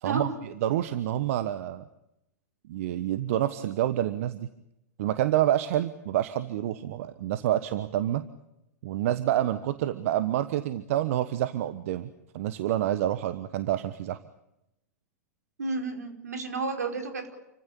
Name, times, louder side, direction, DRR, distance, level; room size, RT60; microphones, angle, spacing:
voice 1, 0.0-1.9 2.7-4.5 5.0-8.3 8.8-14.2, right 12 dB, 55° right, 13 dB, 1.2 m, -28 dB
voice 2, 15.6-17.3, right 4 dB, 80° right, 5 dB, 4.9 m, -31 dB
29.0 x 15.5 x 8.7 m, 0.86 s
hypercardioid pair, 105°, 9 cm